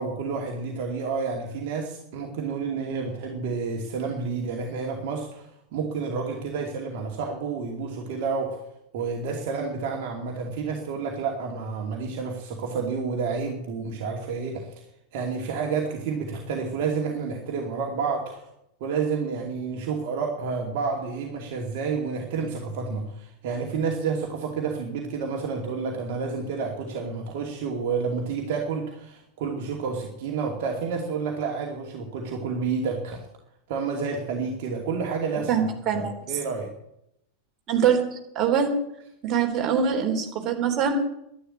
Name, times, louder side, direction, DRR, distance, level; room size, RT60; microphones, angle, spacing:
voice 1, 0.0-8.6 8.9-14.9 15.1-18.5 18.8-33.3 33.7-35.5 35.9-36.7, right 5 dB, 50° right, 1 dB, 2.5 m, -30 dB
voice 2, 35.5-36.1 37.7-38.7 39.2-40.9, right 7 dB, 30° right, 2 dB, 3.5 m, -23 dB
11.5 x 11.5 x 8.6 m, 0.78 s
figure-of-eight pair, 90°, 0 cm